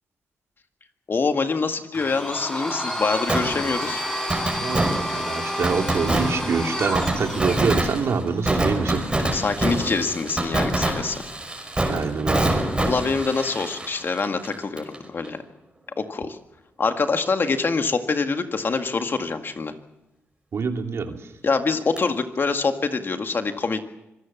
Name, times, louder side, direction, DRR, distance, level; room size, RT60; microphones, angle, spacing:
voice 1, 1.1-4.0 9.3-11.2 12.8-15.4 16.0-16.4 16.8-19.7 21.4-23.8, left 4 dB, 45° left, 7 dB, 1.9 m, -25 dB
Domestic sounds home sounds, 1.9-7.8, equal, 10° left, 5.8 m, -30 dB
Fireworks, 3.3-15.0 15.2-15.3 22.0-22.1, right 1 dB, 20° right, 5.6 m, -26 dB
voice 2, 4.6-9.0 11.9-12.6 20.5-21.3, right 5 dB, 65° right, 4 dB, 2.7 m, -25 dB
25.5 x 17.5 x 7.3 m, 0.95 s
cardioid pair, 70°, 5 cm